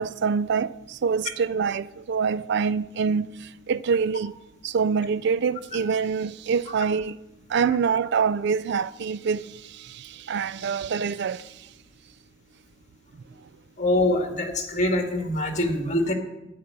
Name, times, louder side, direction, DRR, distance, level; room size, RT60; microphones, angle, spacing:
voice 1, 0.0-4.3 4.6-7.1 7.5-11.5, right 6 dB, 60° right, 0.4 m, -25 dB
voice 2, 13.8-16.1, left 1 dB, 40° left, 2.0 m, -24 dB
12.0 x 9.3 x 6.7 m
head